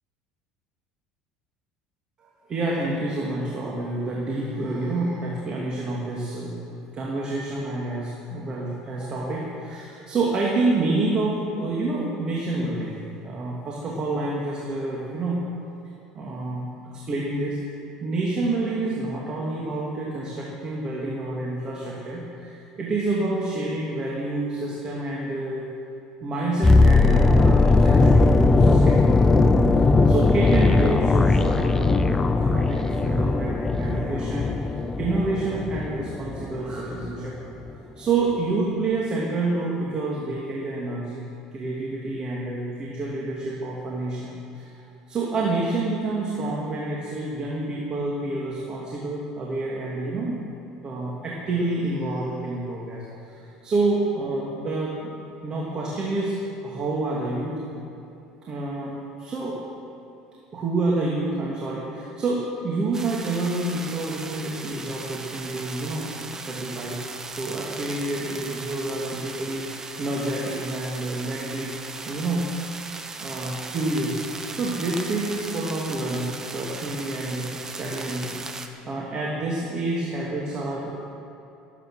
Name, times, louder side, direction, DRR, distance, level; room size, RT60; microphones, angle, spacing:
voice 1, 2.5-6.6 6.9-13.0 13.2-15.4 16.1-17.6 18.0-25.7 26.2-29.5 30.1-34.5 35.0-37.3 38.0-41.2 41.5-44.7 45.1-50.4 50.8-53.0 53.4-55.2 55.4-56.4 56.6-57.6 58.5-59.6 60.5-67.0 67.4-71.8 72.0-72.7 73.2-74.2 74.5-78.4 78.9-81.0, right 2 dB, 40° right, -4 dB, 2.6 m, -28 dB
sound 1, 26.6-36.6 36.9-37.1, left 3 dB, 20° left, 0.8 m, -19 dB
sound 2, 62.9-78.7, right 3 dB, 25° right, 1.3 m, -37 dB
18.5 x 8.8 x 6.4 m, 2.8 s
supercardioid pair, 90°, 2 cm